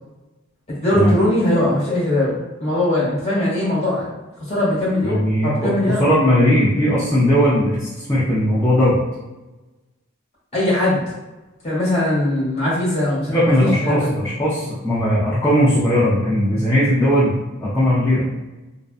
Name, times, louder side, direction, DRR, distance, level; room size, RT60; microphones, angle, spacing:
voice 1, 0.8-4.1 4.5-6.0 10.5-11.0 11.6-14.1, left 1 dB, 30° left, -8 dB, 1.1 m, -20 dB
voice 2, 5.0-9.0 13.3-18.2, equal, 10° left, -10 dB, 0.4 m, -18 dB
2.5 x 2.1 x 2.4 m, 1.1 s
head